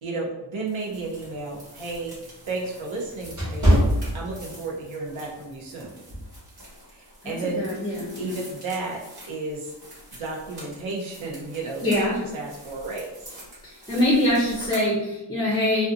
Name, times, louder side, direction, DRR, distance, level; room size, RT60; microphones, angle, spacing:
voice 1, 0.0-2.1 2.5-3.8 4.1-5.9 6.9-7.7 8.2-9.0 9.3-9.7 10.2-13.3, right 3 dB, 85° right, -2 dB, 0.8 m, -33 dB
sound 1, 0.7-14.9, right 1 dB, 55° right, 1.4 m, -46 dB
sound 2, 1.1-4.8 5.3-5.5 6.1-6.4, equal, 40° right, 0.9 m, -24 dB
voice 2, 7.2-8.4 11.8-12.2 13.6-15.9, left 1 dB, 10° left, -5 dB, 0.5 m, -24 dB
2.5 x 2.3 x 2.5 m, 0.95 s
wide cardioid pair, 135°, 47 cm